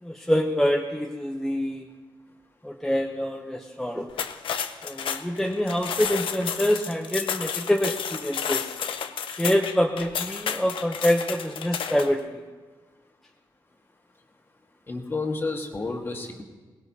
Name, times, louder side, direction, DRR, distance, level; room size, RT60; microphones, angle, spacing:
voice 1, 0.0-1.9 2.6-4.2 4.8-8.7 9.3-12.4, equal, 5° left, 0 dB, 0.7 m, -26 dB
sound 1, 4.1-12.2, left 7 dB, 85° left, 0.7 m, -31 dB
voice 2, 14.9-16.4, left 3 dB, 25° left, 2 dB, 1.6 m, -30 dB
21.5 x 19.0 x 2.8 m, 1.3 s
wide cardioid pair, 150°, 9 cm